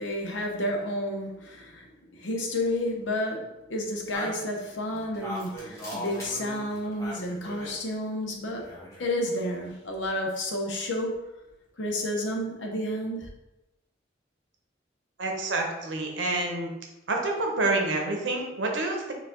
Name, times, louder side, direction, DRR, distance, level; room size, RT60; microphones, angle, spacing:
voice 1, 0.0-1.8 2.1-8.7 9.0-11.2 11.8-13.3, left 1 dB, 80° left, 1 dB, 0.8 m, -31 dB
sound 1, 4.1-7.8 8.5-9.2, equal, 15° left, 1.2 m, -39 dB
voice 2, 15.2-16.7 17.1-19.1, right 2 dB, 80° right, 1 dB, 0.8 m, -28 dB
4.6 x 2.4 x 3.7 m, 0.94 s
head